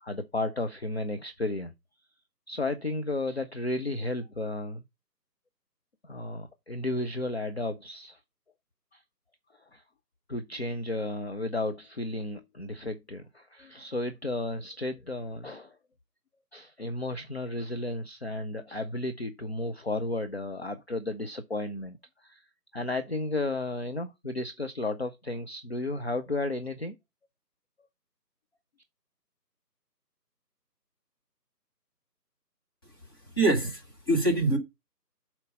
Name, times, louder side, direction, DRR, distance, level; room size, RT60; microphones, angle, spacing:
voice 1, 0.0-1.7 2.5-4.8 6.0-8.2 8.9-9.0 9.6-9.8 10.3-15.8 16.5-22.4 22.7-27.0, left 2 dB, 40° left, 0.6 m, -33 dB
voice 2, 33.4-34.6, right 2 dB, 15° left, 1.1 m, -24 dB
7.4 x 4.5 x 5.3 m
figure-of-eight pair, 155°, 49 cm